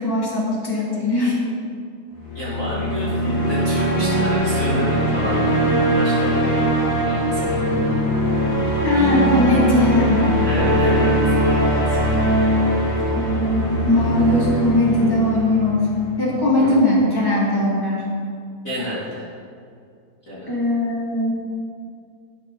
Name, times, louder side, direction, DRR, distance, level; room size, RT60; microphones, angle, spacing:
voice 1, 0.0-1.4 8.8-10.4 13.1-15.9 16.2-18.1 20.5-21.4, left 1 dB, 10° left, -6 dB, 1.4 m, -20 dB
sound 1, 2.2-16.4, equal, 55° left, 4.4 m, -20 dB
voice 2, 2.3-5.7 5.9-6.5 7.0-7.6 10.4-11.2 11.4-12.0 12.6-12.9 16.6-16.9 18.6-19.2 20.3-20.5, equal, 25° left, -9 dB, 1.9 m, -30 dB
18.5 x 6.4 x 4.1 m, 2.3 s
omnidirectional pair, 4.4 m